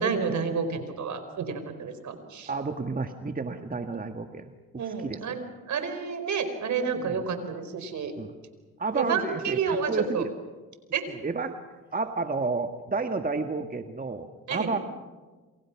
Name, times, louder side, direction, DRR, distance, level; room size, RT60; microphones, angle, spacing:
voice 1, 0.0-2.5 4.8-8.1 8.9-10.2 10.9-11.0 14.5-14.7, right 5 dB, 60° right, 9 dB, 4.7 m, -30 dB
voice 2, 2.5-5.2 7.0-7.2 8.2-8.3 8.8-10.3 11.1-11.6 11.9-14.8, right 3 dB, 25° right, 6 dB, 1.7 m, -31 dB
28.5 x 27.5 x 6.0 m, 1.3 s
supercardioid pair, 65°, 32 cm